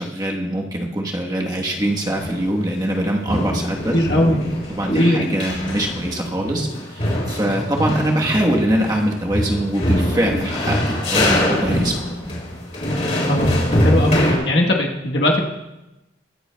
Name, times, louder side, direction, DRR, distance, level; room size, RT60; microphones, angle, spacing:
voice 1, 0.0-3.9 4.7-12.2, right 1 dB, 20° right, -1 dB, 1.2 m, -23 dB
sound 1, 1.7-3.0 3.2-14.4, left 1 dB, 35° left, 3.3 m, -23 dB
voice 2, 3.9-4.4 4.9-5.2 13.3-14.2 14.4-15.4, left 1 dB, 70° left, -1 dB, 1.2 m, -19 dB
22.0 x 7.9 x 2.3 m, 0.96 s
head